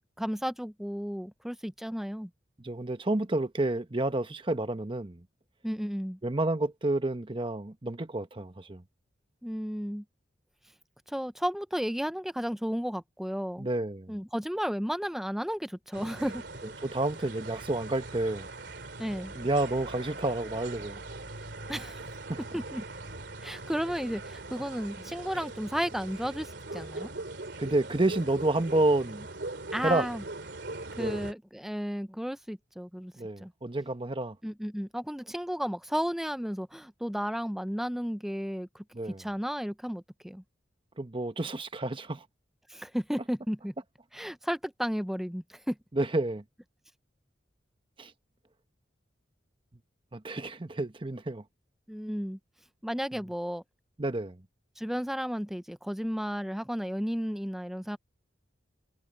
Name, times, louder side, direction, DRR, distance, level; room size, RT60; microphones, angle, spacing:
voice 1, 0.2-2.3 5.6-6.2 9.4-10.0 11.1-13.7 14.1-16.4 19.0-19.3 21.7-22.1 22.5-22.8 23.4-27.1 29.7-30.2 31.0-33.1 33.4-33.5 34.4-38.8 39.2-40.4 42.7-43.7 44.1-45.8 51.9-52.4 52.8-53.6 54.8-58.0, equal, ahead, 0.5 m, -33 dB
voice 2, 2.6-5.2 6.2-8.8 13.6-14.2 16.6-18.5 19.3-21.0 22.3-22.4 27.6-29.3 29.8-30.0 30.9-31.2 33.2-34.4 38.9-39.2 41.0-42.2 45.9-46.4 48.0-48.1 50.1-51.4 54.0-54.4, right 2 dB, 30° right, 1.0 m, -30 dB
sound 1, 15.9-31.3, right 2 dB, 65° right, 3.1 m, -41 dB
head